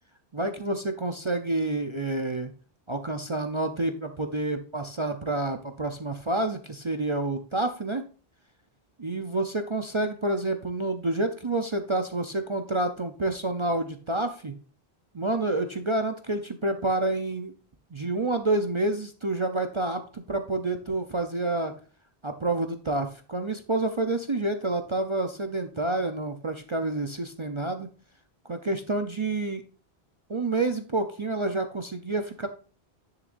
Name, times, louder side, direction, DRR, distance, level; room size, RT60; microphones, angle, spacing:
voice 1, 0.3-2.5 2.9-8.0 9.0-14.6 15.1-17.5 17.9-21.7 22.2-27.9 28.5-29.6 30.3-32.5, right 2 dB, 30° right, 6 dB, 0.7 m, -28 dB
10.5 x 6.8 x 2.6 m, 0.38 s
omnidirectional pair, 1.0 m